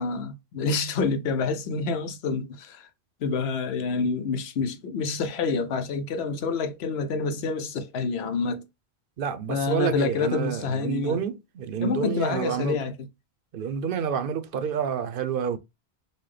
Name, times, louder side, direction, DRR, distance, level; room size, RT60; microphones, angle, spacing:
voice 1, 0.0-2.9 3.2-8.6 9.5-11.2 11.8-12.9, left 4 dB, 85° left, 0.9 m, -27 dB
voice 2, 9.2-12.8 13.5-15.6, right 7 dB, 65° right, 0.7 m, -28 dB
4.1 x 2.2 x 3.2 m
omnidirectional pair, 1.0 m